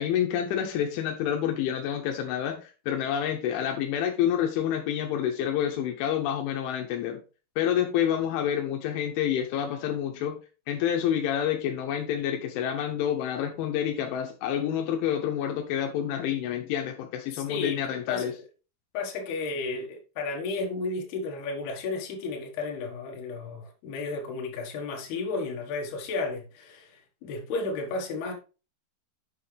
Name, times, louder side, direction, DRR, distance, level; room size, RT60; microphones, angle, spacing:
voice 1, 0.0-7.2 7.6-10.4 10.7-18.3, left 9 dB, 85° left, 3.3 m, -28 dB
voice 2, 17.3-18.3 18.9-28.3, left 3 dB, 65° left, 3.3 m, -33 dB
8.1 x 7.1 x 3.3 m
omnidirectional pair, 5.5 m